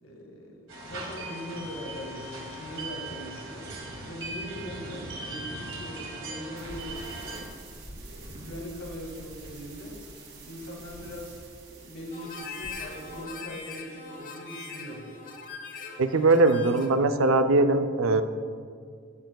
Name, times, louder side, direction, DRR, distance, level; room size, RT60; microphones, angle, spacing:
voice 1, 0.0-3.7 4.0-7.4 8.0-10.0 10.4-11.4 11.7-15.1, equal, 85° left, 1 dB, 1.8 m, -41 dB
sound 1, 0.7-7.4, right 2 dB, 75° right, 2.1 m, -39 dB
sound 2, 6.6-13.3, right 2 dB, 55° right, 2.2 m, -46 dB
Harmonica, 12.1-17.0, left 4 dB, 40° left, 1.1 m, -41 dB
voice 2, 16.0-18.2, right 2 dB, 90° right, 8 dB, 0.6 m, -21 dB
14.0 x 10.5 x 2.3 m, 2.1 s
head